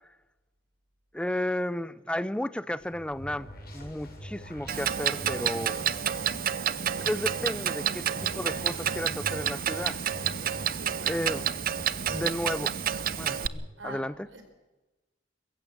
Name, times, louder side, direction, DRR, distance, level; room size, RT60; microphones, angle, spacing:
voice 1, 1.1-3.5 3.7-5.8 7.0-10.0 11.1-11.4 12.1-12.7 13.2-14.1, left 1 dB, 5° left, 0.6 m, -33 dB
sound 1, 2.8-10.8, left 1 dB, 55° left, 7.2 m, -47 dB
sound 2, 3.2-13.7, equal, 25° left, 3.4 m, -46 dB
Clock, 4.7-13.5, right 9 dB, 50° right, 0.7 m, -29 dB
voice 2, 10.7-11.3 12.1-12.3 13.8-14.4, right 1 dB, 85° right, 4.6 m, -44 dB
22.5 x 15.0 x 8.5 m
head